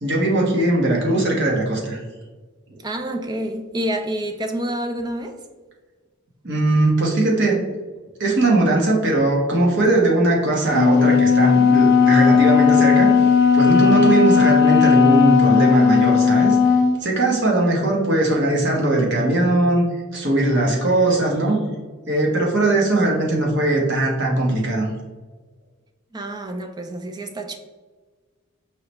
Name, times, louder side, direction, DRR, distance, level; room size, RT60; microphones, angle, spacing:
voice 1, 0.0-2.0 6.4-7.6 8.2-13.1 13.5-16.6 17.0-21.6 22.1-24.9, right 2 dB, 55° right, 1.1 m, -19 dB
voice 2, 2.7-5.4 26.1-27.6, right 1 dB, 20° right, 0.3 m, -28 dB
Wind instrument woodwind instrument, 10.7-17.0, left 6 dB, 50° left, 0.4 m, -15 dB
4.8 x 3.1 x 2.9 m
head